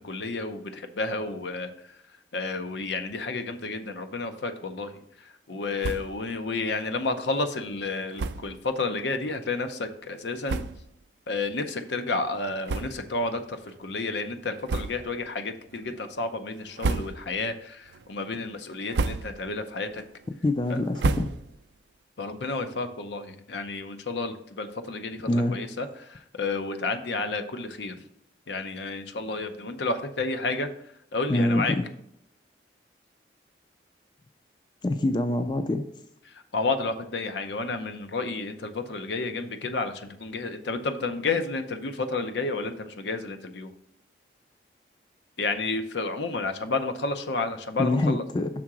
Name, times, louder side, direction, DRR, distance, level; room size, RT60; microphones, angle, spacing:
voice 1, 0.0-1.7 2.3-10.6 11.3-20.0 20.7-20.8 22.2-28.0 28.5-30.7 31.1-31.7 36.3-43.7 45.4-48.2, left 3 dB, 80° left, 0.6 m, -31 dB
sound 1, 5.8-6.3 6.6-6.7 7.0-7.1 8.1-8.6 9.3-9.4 10.1-10.2 10.4-11.0 11.5-11.7 12.6-13.3 13.6-13.8 14.6-15.2 15.7-16.1 16.6-17.5 17.9-18.3 18.7-19.5 19.9-21.7, right 3 dB, 75° right, 0.4 m, -32 dB
voice 2, 20.4-21.3 25.3-25.6 31.3-31.8 34.8-35.8 47.8-48.5, left 1 dB, 25° left, 0.3 m, -25 dB
6.0 x 3.7 x 6.0 m
head